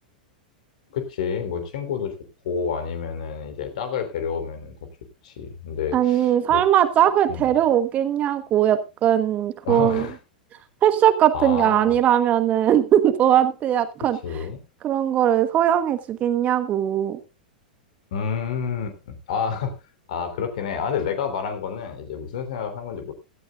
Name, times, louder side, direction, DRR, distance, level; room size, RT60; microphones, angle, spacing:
voice 1, 0.9-2.2 2.4-4.8 5.2-6.6 7.3-7.5 9.6-10.1 11.3-12.0 14.2-14.6 18.1-19.7 20.1-23.1, left 6 dB, 55° left, 8 dB, 3.3 m, -29 dB
voice 2, 5.9-10.1 10.8-14.2 14.8-17.2, right 10 dB, 30° right, 10 dB, 1.3 m, -20 dB
16.5 x 14.0 x 2.4 m, 0.27 s
figure-of-eight pair, 95°, 5 cm